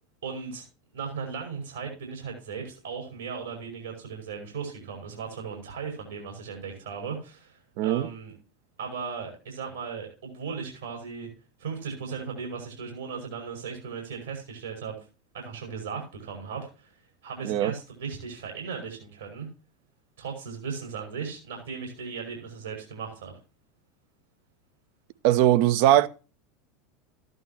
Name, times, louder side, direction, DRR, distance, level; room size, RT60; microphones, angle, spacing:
voice 1, 0.2-0.7 0.9-8.3 8.8-11.3 11.6-15.0 15.3-19.5 20.2-23.3, right 6 dB, 80° right, 5.8 m, -37 dB
voice 2, 7.8-8.1 17.4-17.7 25.2-26.1, right 13 dB, 60° right, 0.9 m, -20 dB
14.0 x 11.0 x 2.9 m
hypercardioid pair, 80°, 0 cm